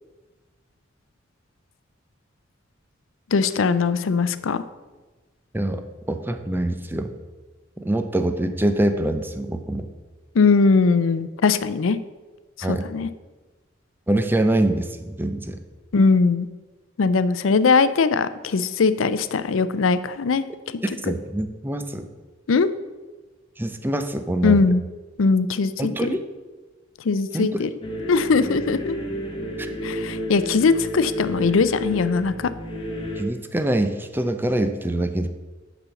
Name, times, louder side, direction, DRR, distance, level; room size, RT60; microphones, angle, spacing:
voice 1, 3.3-4.6 10.3-12.0 12.6-13.1 15.9-16.5 17.0-20.8 22.5-22.7 24.4-24.8 25.2-26.2 27.0-27.7 28.1-29.0 29.8-32.5, left 4 dB, 85° left, 14 dB, 0.5 m, -20 dB
voice 2, 5.5-7.1 7.8-9.9 12.6-12.9 14.1-15.6 21.0-22.1 23.6-24.7 25.8-26.2 27.3-27.6 29.6-29.7 33.2-35.3, right 1 dB, 10° right, 8 dB, 0.5 m, -24 dB
sound 1, 27.8-33.2, equal, 25° left, 1.4 m, -31 dB
6.9 x 6.1 x 6.9 m, 1.3 s
head